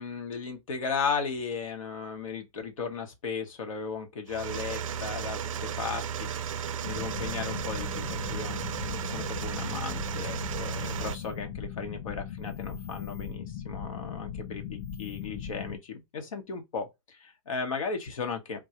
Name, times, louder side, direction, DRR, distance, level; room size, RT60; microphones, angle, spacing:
voice 1, 0.0-6.3 6.8-18.7, left 5 dB, 90° left, 1.0 m, -36 dB
sound 1, 4.3-11.2, right 8 dB, 85° right, 0.4 m, -34 dB
sound 2, 6.8-15.8, left 8 dB, 35° left, 0.4 m, -39 dB
3.7 x 2.3 x 2.8 m
hypercardioid pair, 135°, 17 cm